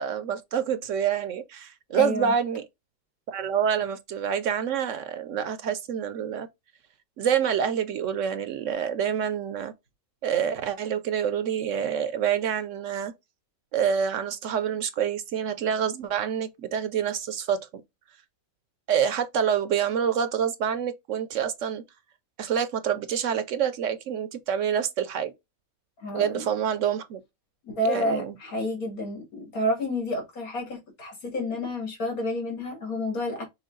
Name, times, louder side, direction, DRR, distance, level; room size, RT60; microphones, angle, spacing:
voice 1, 0.0-2.7 3.3-6.5 7.2-9.7 10.2-13.1 13.7-17.6 18.9-21.8 22.4-25.3 26.1-27.2 27.8-28.3, right 8 dB, 70° right, 0.8 m, -27 dB
voice 2, 1.9-2.4 26.0-26.4 27.6-33.5, left 1 dB, 80° left, 2.4 m, -30 dB
6.1 x 2.3 x 3.7 m
omnidirectional pair, 1.5 m